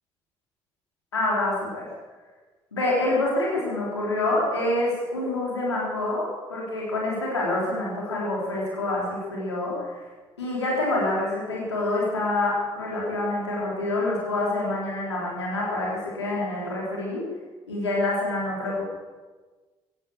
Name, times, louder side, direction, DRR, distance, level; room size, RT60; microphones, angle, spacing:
voice 1, 1.1-1.9 2.7-10.0 10.4-17.2 17.7-18.8, left 2 dB, 85° left, -4 dB, 3.9 m, -27 dB
17.0 x 11.5 x 6.6 m, 1.3 s
figure-of-eight pair, 40°, 14 cm